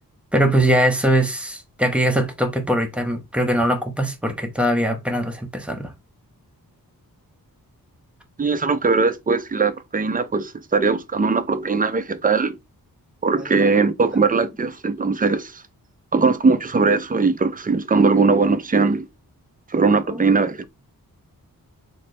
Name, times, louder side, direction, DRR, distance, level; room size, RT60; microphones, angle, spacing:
voice 1, 0.3-5.9 13.3-13.7 20.1-20.2, right 1 dB, 5° right, 0.9 m, -21 dB
voice 2, 8.4-12.6 13.2-15.6 16.1-19.1 19.7-20.7, right 4 dB, 25° right, 0.5 m, -20 dB
3.2 x 3.0 x 4.3 m
wide cardioid pair, 120°, 36 cm